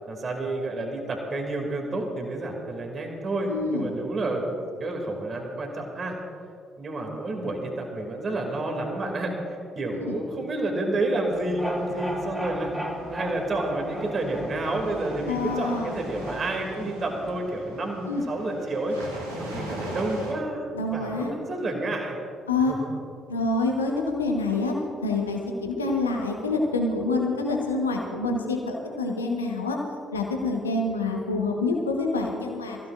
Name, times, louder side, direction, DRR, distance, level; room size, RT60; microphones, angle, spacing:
voice 1, 0.1-6.2 6.8-12.7 13.1-22.2 22.7-23.0, right 2 dB, 40° right, 2 dB, 2.5 m, -30 dB
voice 2, 3.5-3.9 10.1-10.2 15.3-15.9 18.1-18.2 20.7-21.3 22.5-22.8 23.3-24.7 25.0-29.8 30.1-32.8, left 3 dB, 85° left, 1 dB, 1.2 m, -26 dB
sound 1, 11.3-17.4, equal, 10° right, 2.9 m, -36 dB
sound 2, 11.6-20.3, right 1 dB, 85° right, 1.9 m, -41 dB
24.0 x 15.5 x 2.5 m, 2.3 s
figure-of-eight pair, 45°, 0 cm